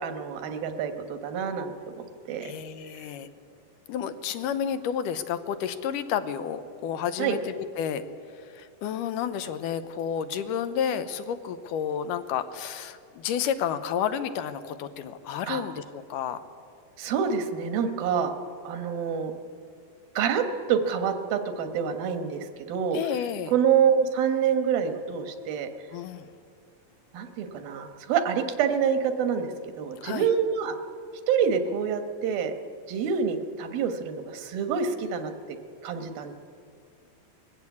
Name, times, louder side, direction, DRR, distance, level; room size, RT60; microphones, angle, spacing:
voice 1, 0.0-1.7 2.0-2.5 7.2-7.4 15.5-15.6 17.0-18.3 18.6-19.3 20.2-23.0 23.5-25.7 27.1-30.8 31.3-32.5 32.9-35.3 35.8-36.3, right 7 dB, 80° right, 8 dB, 3.1 m, -27 dB
voice 2, 2.4-3.3 3.9-8.0 8.5-15.8 16.1-16.4 22.9-23.5 25.9-26.3 30.0-30.3, left 8 dB, 75° left, 12 dB, 2.2 m, -31 dB
21.5 x 15.5 x 8.4 m, 2.3 s
omnidirectional pair, 4.1 m